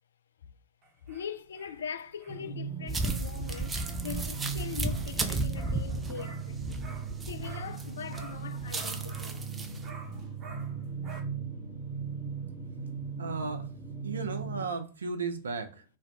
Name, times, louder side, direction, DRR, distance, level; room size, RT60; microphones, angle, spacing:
sound 1, 0.8-7.8 8.1-11.2, right 2 dB, 30° right, 0.8 m, -51 dB
voice 1, 1.1-6.8 7.3-9.4, left 7 dB, 65° left, 0.3 m, -42 dB
sound 2, 2.3-14.6, right 5 dB, ahead, 0.8 m, -38 dB
sound 3, 2.9-7.8 8.2-9.8, right 2 dB, 15° right, 0.4 m, -34 dB
voice 2, 13.2-13.7 14.0-15.8, right 4 dB, 70° right, 0.5 m, -35 dB
2.6 x 2.2 x 3.4 m
figure-of-eight pair, 90°, 0 cm